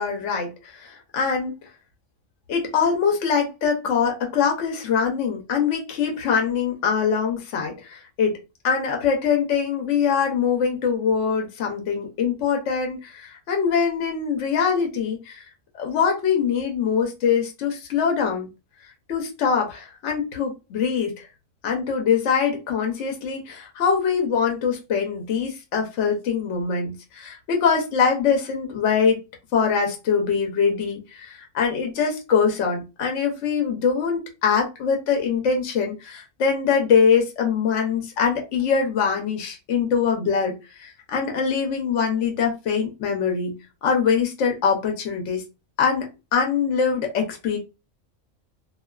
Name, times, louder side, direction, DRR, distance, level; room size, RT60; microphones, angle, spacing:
voice 1, 0.0-1.5 2.5-8.4 8.6-15.4 15.7-18.5 19.1-21.3 21.6-29.2 29.5-43.5 43.8-45.4 45.8-46.1 46.3-47.6, left 6 dB, 65° left, 1.0 m, -23 dB
2.3 x 2.3 x 2.2 m
omnidirectional pair, 1.4 m